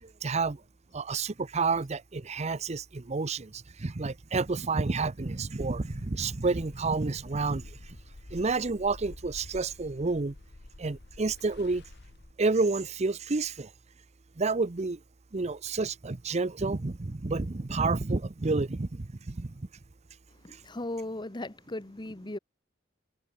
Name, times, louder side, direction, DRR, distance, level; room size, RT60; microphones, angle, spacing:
voice 1, 0.2-0.6 0.9-7.7 8.3-10.3 10.8-11.8 12.4-13.7 14.4-15.0 15.3-19.5, right 3 dB, 35° right, 0.7 m, -29 dB
sound 1, 5.1-12.3, left 2 dB, 55° left, 1.1 m, -49 dB
voice 2, 20.4-22.4, left 1 dB, 25° left, 1.1 m, -37 dB
head